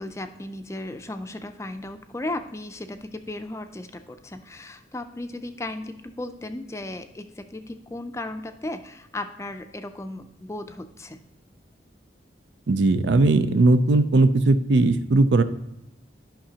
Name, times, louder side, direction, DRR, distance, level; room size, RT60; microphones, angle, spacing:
voice 1, 0.0-11.2, left 1 dB, 15° left, 8 dB, 0.4 m, -35 dB
voice 2, 12.7-15.4, right 2 dB, 80° right, 11 dB, 0.5 m, -18 dB
11.5 x 5.8 x 2.8 m, 0.87 s
head